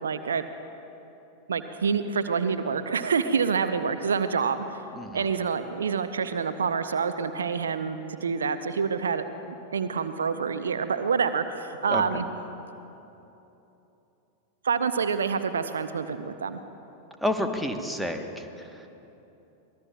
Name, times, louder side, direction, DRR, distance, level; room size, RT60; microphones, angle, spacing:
voice 1, 0.0-0.5 1.5-4.8 5.1-9.2 9.7-12.3 14.6-16.6, right 6 dB, 70° right, 11 dB, 0.6 m, -27 dB
voice 2, 17.2-18.9, left 1 dB, ahead, 3 dB, 1.2 m, -30 dB
24.0 x 19.5 x 2.3 m, 3.0 s
figure-of-eight pair, 90°, 0 cm